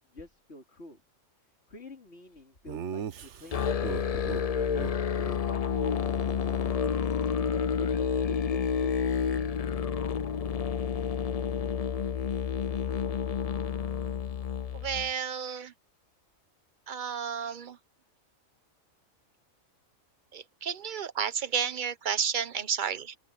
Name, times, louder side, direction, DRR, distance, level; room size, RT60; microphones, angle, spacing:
voice 1, 0.1-1.0 1.7-4.4, left 2 dB, 50° left, 3.6 m, -48 dB
Laughter, 2.7-4.4 4.8-4.9 5.2-5.4 5.7-7.2, right 8 dB, 60° right, 1.1 m, -39 dB
Musical instrument, 3.5-15.1, left 7 dB, 80° left, 0.3 m, -29 dB
voice 2, 14.7-15.7 16.9-17.8 20.3-23.2, right 7 dB, 40° right, 1.1 m, -32 dB
open air
omnidirectional pair, 1.4 m